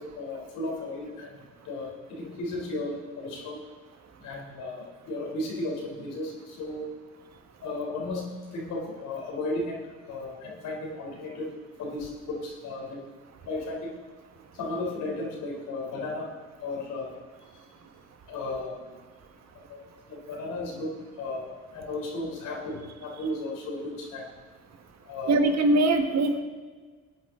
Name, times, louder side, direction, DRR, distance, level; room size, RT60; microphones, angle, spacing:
voice 1, 0.0-3.6 4.2-6.8 7.6-9.8 10.1-11.5 11.8-13.0 13.4-14.0 14.5-16.3 16.6-17.1 18.3-19.0 19.7-19.8 20.1-24.2 25.0-25.4, left 2 dB, 90° left, -2 dB, 3.7 m, -35 dB
voice 2, 25.3-26.4, right 2 dB, 60° right, 6 dB, 1.6 m, -22 dB
19.5 x 9.1 x 3.8 m, 1.4 s
cardioid pair, 90°, 30 cm